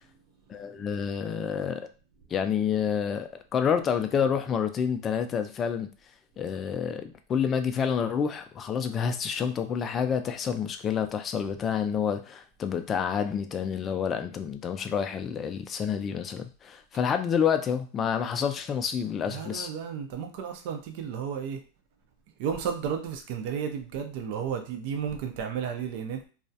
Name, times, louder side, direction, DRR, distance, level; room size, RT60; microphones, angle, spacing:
voice 1, 0.5-1.8 2.3-5.9 6.4-19.7, left 7 dB, 30° left, 7 dB, 0.3 m, -28 dB
voice 2, 19.2-21.6 22.4-26.3, right 7 dB, 60° right, 5 dB, 0.5 m, -33 dB
2.3 x 2.0 x 2.7 m, 0.36 s
hypercardioid pair, 115°, 0 cm